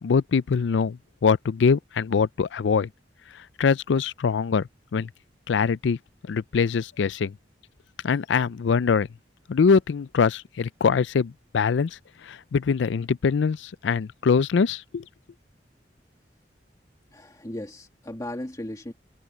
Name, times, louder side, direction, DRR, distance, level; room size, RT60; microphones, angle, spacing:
voice 1, 0.0-2.9 3.6-5.1 5.5-6.0 6.3-7.3 8.0-9.1 9.5-12.0 12.2-15.0, left 5 dB, 80° left, 0.4 m, -23 dB
voice 2, 17.1-18.9, left 1 dB, 20° left, 2.2 m, -36 dB
head